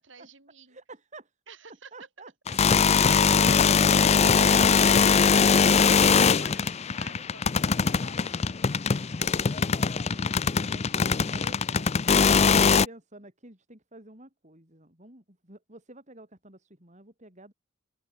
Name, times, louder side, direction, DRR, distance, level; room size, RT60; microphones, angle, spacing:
voice 1, 0.0-0.8 1.5-2.1 5.2-9.5, right 4 dB, 65° right, 5.9 m, -49 dB
voice 2, 0.7-1.3 1.9-5.1 8.2-8.4 10.0-17.5, right 2 dB, 35° right, 7.0 m, -47 dB
sound 1, 2.5-12.9, left 6 dB, 30° left, 0.5 m, -21 dB
open air
head